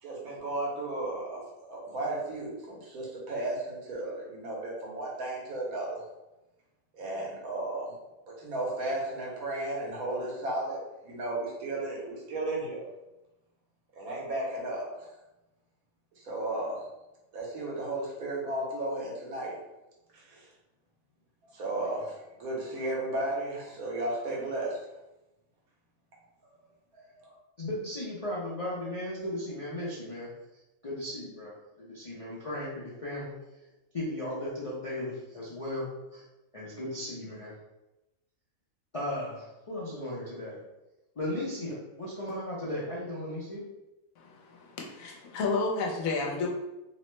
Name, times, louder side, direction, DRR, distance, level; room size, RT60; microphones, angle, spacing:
voice 1, 0.0-6.0 6.9-7.9 8.3-12.8 13.9-15.1 16.2-16.9 17.3-19.6 20.1-20.5 21.4-24.8 26.9-27.4, right 2 dB, 90° right, -4 dB, 1.3 m, -34 dB
voice 2, 27.6-30.3 30.8-33.3 33.9-36.2 36.5-37.5 38.9-40.6 41.2-43.6, left 1 dB, 60° left, -7 dB, 0.3 m, -36 dB
voice 3, 44.2-46.5, left 3 dB, 80° left, 0 dB, 1.1 m, -31 dB
3.0 x 2.1 x 3.0 m, 0.98 s
omnidirectional pair, 1.5 m